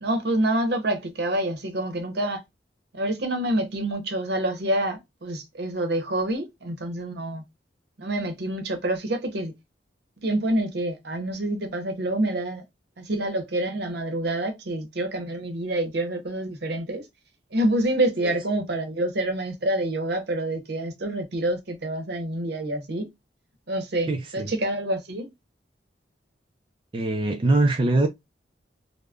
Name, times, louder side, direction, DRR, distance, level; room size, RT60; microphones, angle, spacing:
voice 1, 0.0-2.4 2.9-7.4 8.0-9.5 10.2-12.6 13.0-17.1 17.5-23.1 23.7-25.3, right 1 dB, 65° right, 0.8 m, -27 dB
voice 2, 24.1-24.5 26.9-28.1, right 2 dB, 30° right, 0.4 m, -23 dB
3.4 x 2.1 x 2.3 m
head